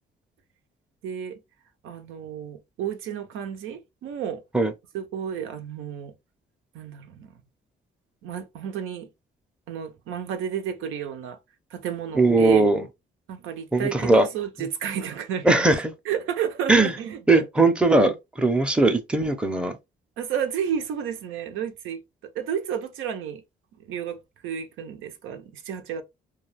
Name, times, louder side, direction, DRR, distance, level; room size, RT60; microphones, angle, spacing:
voice 1, 1.0-1.4 1.8-4.4 4.9-6.1 6.7-7.4 8.2-9.1 9.7-11.4 11.7-12.7 13.3-15.7 16.1-17.4 20.2-23.4 23.8-26.0, right 8 dB, 85° right, 0.6 m, -31 dB
voice 2, 12.2-12.9 13.7-14.3 15.4-15.9 16.7-16.9 17.3-19.7, right 2 dB, 5° right, 0.5 m, -19 dB
2.3 x 2.2 x 3.2 m
cardioid pair, 90°, 20 cm